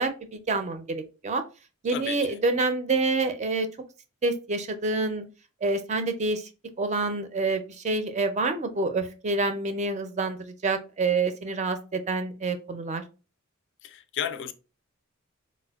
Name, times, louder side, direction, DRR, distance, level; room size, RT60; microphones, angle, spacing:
voice 1, 0.0-1.4 1.8-3.7 4.2-5.2 5.6-6.4 6.8-13.0, right 3 dB, 35° right, 0.4 m, -27 dB
voice 2, 1.9-2.4 13.8-14.5, left 9 dB, 60° left, 0.3 m, -33 dB
4.1 x 2.1 x 2.3 m
head